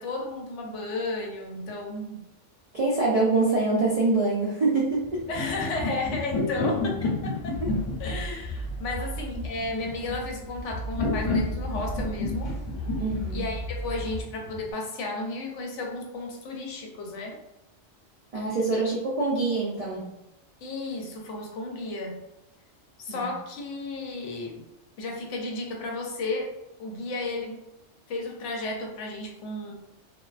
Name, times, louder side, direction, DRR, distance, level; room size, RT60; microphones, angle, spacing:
voice 1, 0.0-2.3 5.3-7.6 8.0-12.5 13.3-17.4 18.7-18.8 20.6-22.2 23.0-24.6 25.0-26.5 26.8-27.6 28.1-29.7, left 2 dB, 85° left, 0 dB, 0.9 m, -33 dB
voice 2, 2.7-5.2 5.8-5.9 9.3-9.4 13.0-13.4 18.3-20.1 23.1-23.3, right 3 dB, 70° right, -6 dB, 0.3 m, -25 dB
sound 1, 5.0-14.7, left 3 dB, 40° left, 0.5 m, -31 dB
sound 2, 7.5-14.2, equal, 65° left, 0.8 m, -35 dB
2.3 x 2.3 x 2.3 m, 0.89 s
omnidirectional pair, 1.2 m